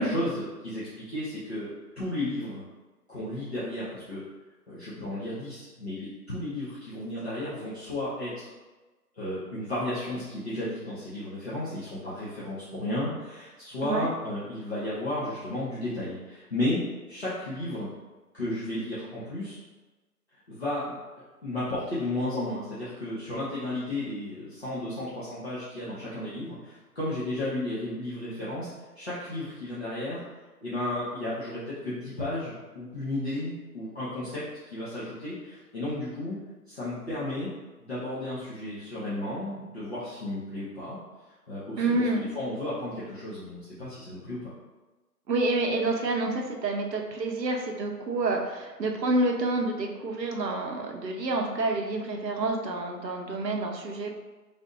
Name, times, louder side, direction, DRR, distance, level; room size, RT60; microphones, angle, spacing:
voice 1, 0.0-1.7 2.0-2.6 3.1-4.2 4.7-8.5 9.2-16.8 17.1-17.9 18.3-19.6 20.5-21.0 21.4-30.2 30.6-36.4 36.7-37.5 37.8-41.0 41.5-44.5, left 1 dB, 40° left, -11 dB, 0.8 m, -33 dB
voice 2, 41.8-42.3 45.3-54.2, right 2 dB, 85° right, 2 dB, 0.8 m, -28 dB
3.3 x 2.6 x 2.6 m, 1.2 s
figure-of-eight pair, 170°, 49 cm